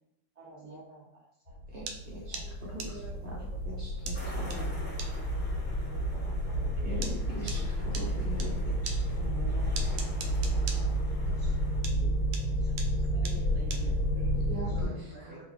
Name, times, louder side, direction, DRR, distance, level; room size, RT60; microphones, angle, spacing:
voice 1, 0.3-2.4 2.8-2.9 3.5-3.6 4.5-6.9 7.5-7.8 9.1-11.5 11.9-12.7 13.8-14.3 15.2-15.4, right 3 dB, 20° right, -8 dB, 1.5 m, -50 dB
sound 1, 1.5-14.9, equal, 80° left, 1.7 m, -31 dB
voice 2, 1.7-3.4 3.6-4.5 6.8-9.0 14.5-15.4, equal, 55° right, -5 dB, 0.5 m, -42 dB
sound 2, 1.9-8.5 8.9-11.6 11.8-14.5, right 5 dB, 75° right, 1.1 m, -41 dB
voice 3, 2.4-3.5 4.1-4.6 8.0-8.2 11.3-11.5 12.5-14.0 14.7-15.4, right 1 dB, 40° right, -9 dB, 1.0 m, -50 dB
sound 3, 4.1-11.8, left 1 dB, 10° left, 0.6 m, -46 dB
5.5 x 2.5 x 3.2 m, 0.78 s
omnidirectional pair, 2.2 m